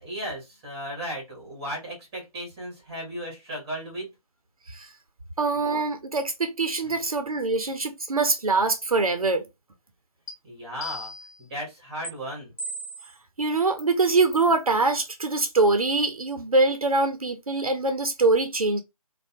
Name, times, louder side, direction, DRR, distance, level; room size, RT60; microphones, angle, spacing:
voice 1, 0.0-4.1 6.8-7.0 10.4-11.1 11.4-12.5, equal, 10° right, 0.9 m, -35 dB
voice 2, 5.4-9.4 13.4-18.8, right 3 dB, 70° right, 0.5 m, -23 dB
sound 1, 10.3-10.4 10.8-11.4 12.0-12.1 12.6-13.1 13.8-13.9 14.3-14.5, equal, 55° left, 1.2 m, -36 dB
2.6 x 2.1 x 2.4 m
figure-of-eight pair, 150°, 19 cm